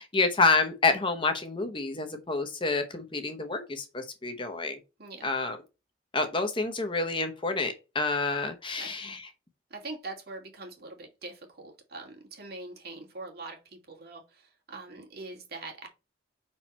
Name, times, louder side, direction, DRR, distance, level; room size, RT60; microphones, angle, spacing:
voice 1, 0.0-4.8 5.2-5.6 6.1-9.2, left 3 dB, 25° left, 7 dB, 0.8 m, -28 dB
voice 2, 5.0-5.3 8.8-8.9 9.7-15.9, right 3 dB, 50° right, 1 dB, 2.3 m, -43 dB
5.6 x 4.4 x 4.3 m, 0.27 s
head